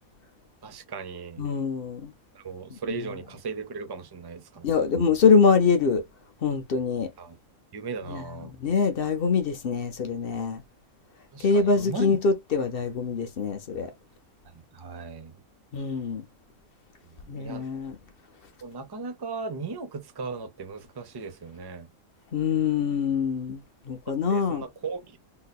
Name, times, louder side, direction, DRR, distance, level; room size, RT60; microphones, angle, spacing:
voice 1, 0.6-1.5 2.4-4.9 7.2-7.4 7.7-8.5 11.3-12.2 14.7-15.3 17.2-17.6 18.6-21.9 24.3-25.2, right 4 dB, 30° right, 0.4 m, -37 dB
voice 2, 1.4-2.1 2.7-2.8 4.6-6.0 6.4-7.1 8.0-10.6 11.4-13.9 15.7-16.3 17.3-17.9 22.3-24.7, left 5 dB, 55° left, 0.6 m, -24 dB
3.8 x 2.8 x 2.3 m
omnidirectional pair, 1.5 m